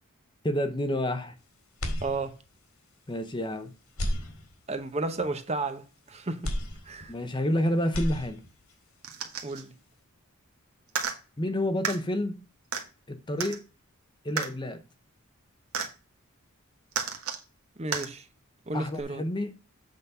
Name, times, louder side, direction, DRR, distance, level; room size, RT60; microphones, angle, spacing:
voice 1, 0.4-1.4 3.1-3.7 7.1-8.4 11.4-12.4 13.1-13.6 14.2-14.8 18.7-19.6, left 1 dB, 20° left, 0.7 m, -29 dB
sound 1, 1.8-2.7 3.1-3.2 3.9-4.9 6.4-7.5 7.8-8.7, equal, 75° left, 2.2 m, -34 dB
voice 2, 2.0-2.3 4.7-6.5 6.9-7.1 9.4-9.7 17.8-18.2 18.7-19.2, right 3 dB, 30° right, 0.8 m, -32 dB
sound 2, 9.0-9.6 10.9-11.1 11.8-12.0 12.7-12.8 13.4-13.6 14.4-14.5 15.7-15.9 16.9-17.4 17.9-18.1 19.0-19.1, right 6 dB, 85° right, 1.5 m, -31 dB
7.9 x 4.0 x 5.4 m
head